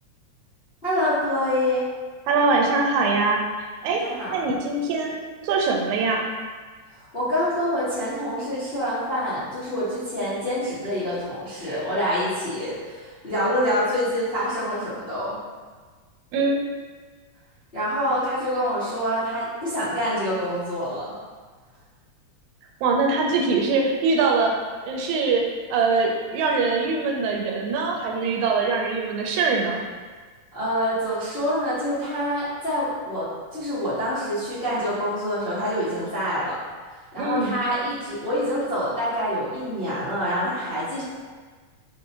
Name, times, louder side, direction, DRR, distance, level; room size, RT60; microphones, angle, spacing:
voice 1, 0.8-1.8 4.0-4.3 7.1-15.4 17.7-21.1 30.5-36.6 37.1-41.0, equal, 50° left, -15 dB, 0.6 m, -26 dB
voice 2, 2.3-3.4 3.8-4.0 4.3-5.2 5.4-6.3 16.3-16.6 22.8-24.5 24.8-25.4 25.7-29.8 37.2-37.6, right 4 dB, 90° right, 0 dB, 2.0 m, -22 dB
5.3 x 2.6 x 2.9 m, 1.4 s
omnidirectional pair, 3.3 m